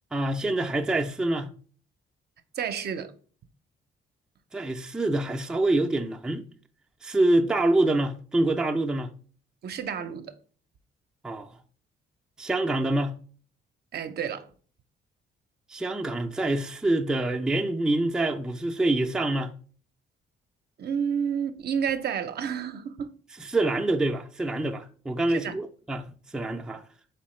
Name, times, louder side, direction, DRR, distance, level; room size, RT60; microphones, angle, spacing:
voice 1, 0.1-1.5 4.5-6.5 7.0-9.1 11.2-11.5 12.4-13.2 15.7-19.5 23.4-26.8, right 2 dB, 5° right, 0.4 m, -26 dB
voice 2, 2.5-3.1 9.6-10.3 13.9-14.5 20.8-23.1 25.3-25.6, right 7 dB, 55° right, 0.5 m, -30 dB
4.3 x 3.5 x 3.1 m
cardioid pair, 90°, 20 cm